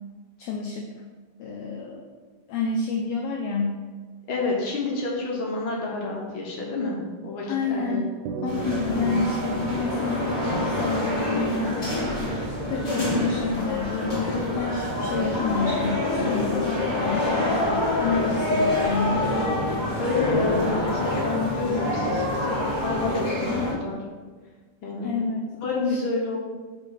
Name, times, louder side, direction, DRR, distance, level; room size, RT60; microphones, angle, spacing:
voice 1, 0.4-0.9 1.4-2.1 2.5-3.8 7.5-11.9 12.7-17.6 18.0-19.3 23.4-23.9 25.0-25.4 25.9-26.0, left 4 dB, 90° left, 2 dB, 1.5 m, -29 dB
voice 2, 4.3-8.0 8.3-8.6 8.8-9.2 19.7-22.5 22.8-24.0 24.8-25.1 25.6-26.4, left 3 dB, 65° left, -2 dB, 1.3 m, -29 dB
sound 1, 8.3-12.9, right 5 dB, 90° right, 1.5 m, -37 dB
sound 2, 8.4-23.7, left 1 dB, 30° left, 1.7 m, -26 dB
5.3 x 4.5 x 5.6 m, 1.4 s
omnidirectional pair, 3.7 m